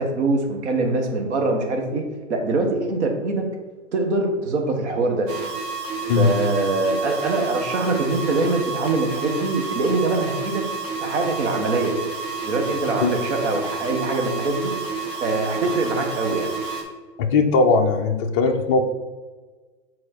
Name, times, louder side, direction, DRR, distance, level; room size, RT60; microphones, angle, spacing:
voice 1, 0.0-3.4 3.9-5.3 6.1-10.6 11.0-11.9 12.4-14.7 15.2-16.5, right 2 dB, 65° right, 3 dB, 1.4 m, -23 dB
sound 1, 5.3-16.8, right 4 dB, 35° right, 1.5 m, -30 dB
voice 2, 17.2-18.8, left 4 dB, 25° left, 2 dB, 0.4 m, -19 dB
6.6 x 4.1 x 4.4 m, 1.3 s
hypercardioid pair, 135°, 37 cm